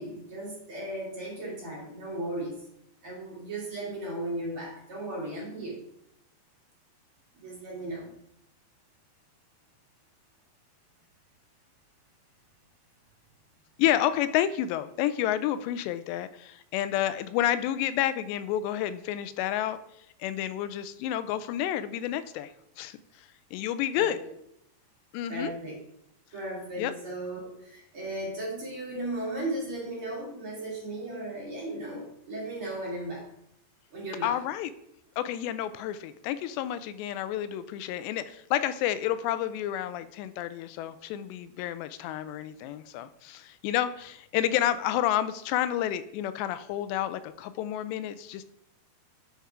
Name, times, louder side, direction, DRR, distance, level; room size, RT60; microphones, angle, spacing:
voice 1, 0.0-2.6 3.0-5.8 7.3-8.1 23.9-24.1 25.3-25.8 26.3-33.3 33.9-34.4, right 1 dB, 35° right, -5 dB, 3.0 m, -36 dB
voice 2, 13.8-19.8 20.2-24.2 25.1-25.5 26.8-26.9 34.2-34.7 35.2-48.4, left 12 dB, 90° left, 13 dB, 2.8 m, -30 dB
9.5 x 5.6 x 4.8 m, 0.75 s
omnidirectional pair, 4.9 m